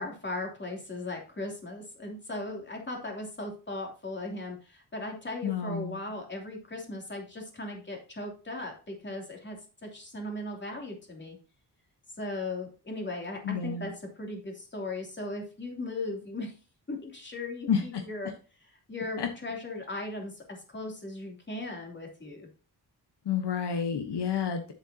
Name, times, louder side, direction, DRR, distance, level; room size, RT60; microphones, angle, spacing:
voice 1, 0.0-11.4 12.2-16.6 16.9-18.3 18.6-22.5, left 2 dB, 25° left, 1 dB, 3.0 m, -38 dB
voice 2, 5.4-6.0 13.4-13.9 17.7-18.0 19.2-19.3 23.2-24.7, left 7 dB, 75° left, 6 dB, 1.3 m, -30 dB
9.5 x 7.8 x 2.8 m, 0.35 s
wide cardioid pair, 150°, 41 cm